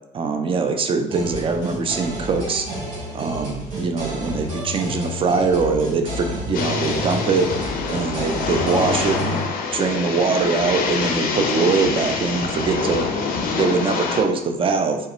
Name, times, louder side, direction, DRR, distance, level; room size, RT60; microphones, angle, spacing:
voice 1, 0.1-2.7 3.1-7.5 7.9-13.1 13.5-15.0, right 4 dB, 30° right, 6 dB, 0.4 m, -22 dB
sound 1, 1.1-9.4, left 1 dB, 90° right, 0.9 m, -30 dB
sound 2, 6.5-14.2, left 4 dB, 60° left, 0.4 m, -25 dB
2.3 x 2.1 x 2.9 m, 0.94 s
hypercardioid pair, 65°, 17 cm